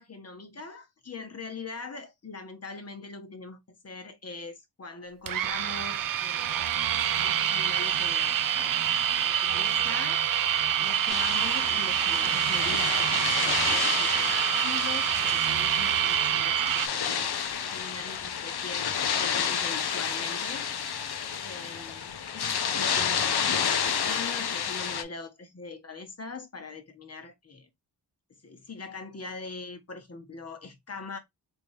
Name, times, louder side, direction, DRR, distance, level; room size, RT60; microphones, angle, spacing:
voice 1, 0.0-6.6 7.1-8.8 9.1-20.7 21.1-27.7 28.4-31.2, left 3 dB, 35° left, 1.1 m, -42 dB
sound 1, 5.3-16.9, right 10 dB, 50° right, 0.5 m, -26 dB
sound 2, 11.1-25.0, left 7 dB, 65° left, 0.7 m, -30 dB
3.4 x 2.7 x 3.2 m
cardioid pair, 65°, 42 cm